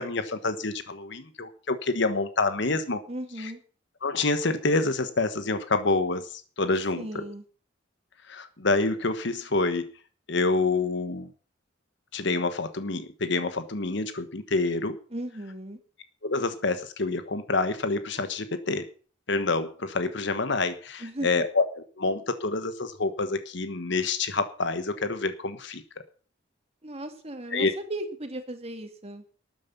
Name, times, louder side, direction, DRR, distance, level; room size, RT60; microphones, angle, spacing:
voice 1, 0.0-3.0 3.4-3.5 4.0-7.2 8.3-9.9 10.3-11.3 12.1-15.0 16.2-18.8 19.3-25.8 27.5-27.7, left 3 dB, 65° left, 10 dB, 1.3 m, -27 dB
voice 2, 3.1-3.6 7.0-7.4 15.1-15.8 21.0-21.4 26.8-29.2, right 1 dB, 30° right, 5 dB, 2.4 m, -36 dB
13.0 x 9.3 x 7.1 m, 0.40 s
head